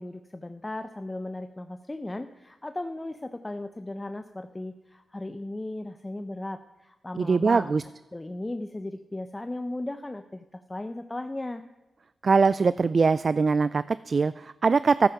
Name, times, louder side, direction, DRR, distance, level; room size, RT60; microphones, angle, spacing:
voice 1, 0.0-7.8 8.1-11.6, left 2 dB, 20° left, 9 dB, 0.7 m, -36 dB
voice 2, 7.2-7.8 12.2-15.1, right 4 dB, 55° right, 17 dB, 0.3 m, -22 dB
13.0 x 9.9 x 5.9 m, 1.1 s
cardioid pair, 50°, 0 cm